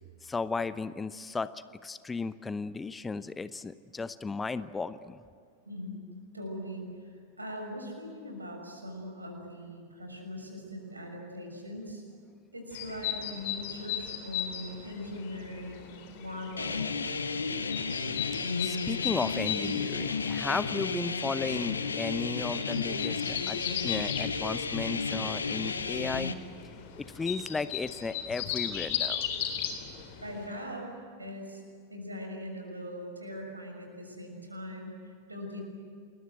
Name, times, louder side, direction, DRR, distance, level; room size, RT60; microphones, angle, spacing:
voice 1, 0.2-1.5 1.8-5.2 18.6-23.6 23.8-26.3 27.0-29.3, left 4 dB, 15° left, 15 dB, 0.8 m, -34 dB
voice 2, 5.6-6.0 6.3-12.0 12.5-16.9 30.2-30.9 31.2-31.6 31.9-35.6, left 1 dB, 80° right, 2 dB, 6.5 m, -41 dB
sound 1, 12.7-30.5, left 9 dB, 50° left, 3.9 m, -38 dB
sound 2, 16.6-26.3, left 4 dB, 75° left, 1.4 m, -33 dB
29.0 x 21.5 x 8.1 m, 2.3 s
figure-of-eight pair, 90°, 0 cm